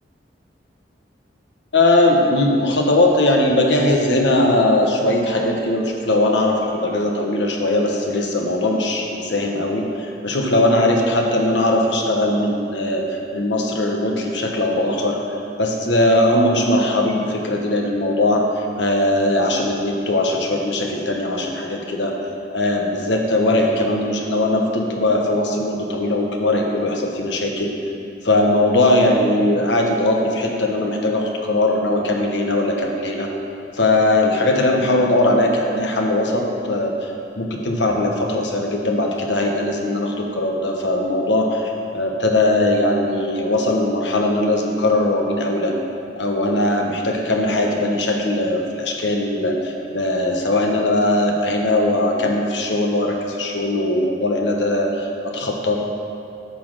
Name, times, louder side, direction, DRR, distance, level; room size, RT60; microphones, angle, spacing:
voice 1, 1.7-15.2 15.6-22.2 22.5-27.7 28.2-33.3 33.7-45.7 46.2-55.8, left 1 dB, 85° left, 1 dB, 1.2 m, -20 dB
11.5 x 4.3 x 7.5 m, 2.6 s
head